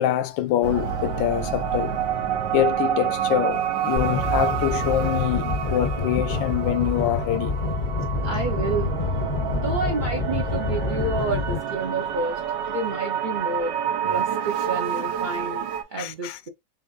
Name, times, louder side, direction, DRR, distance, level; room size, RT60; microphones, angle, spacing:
voice 1, 0.0-2.0 2.5-7.5 9.6-9.7 16.0-16.4, left 11 dB, 85° left, 1.3 m, -25 dB
sound 1, 0.6-15.8, right 8 dB, 75° right, 1.5 m, -28 dB
sound 2, 4.0-11.6, left 3 dB, 35° left, 0.6 m, -27 dB
voice 2, 8.2-8.9 9.5-12.4 12.7-13.7 14.0-16.5, right 3 dB, 50° right, 0.6 m, -29 dB
6.6 x 2.5 x 2.4 m
omnidirectional pair, 2.0 m